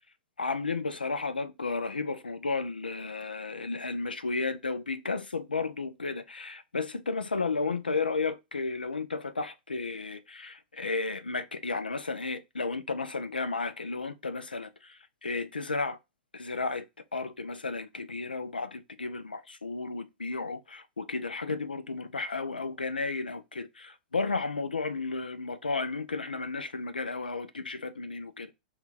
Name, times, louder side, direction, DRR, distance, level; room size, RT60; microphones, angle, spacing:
voice 1, 0.4-16.0 16.3-16.8 17.1-28.5, left 3 dB, 90° left, 0.5 m, -33 dB
3.6 x 2.4 x 4.0 m
figure-of-eight pair, 100°, 5 cm